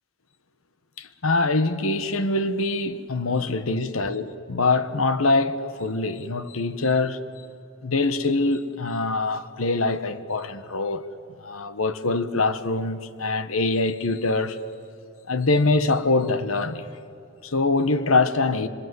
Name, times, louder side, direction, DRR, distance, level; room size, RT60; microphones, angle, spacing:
voice 1, 1.0-7.2 7.8-11.1 11.4-14.6 15.3-16.9 17.4-18.7, left 3 dB, 80° left, 1.3 m, -24 dB
26.5 x 24.5 x 8.0 m
head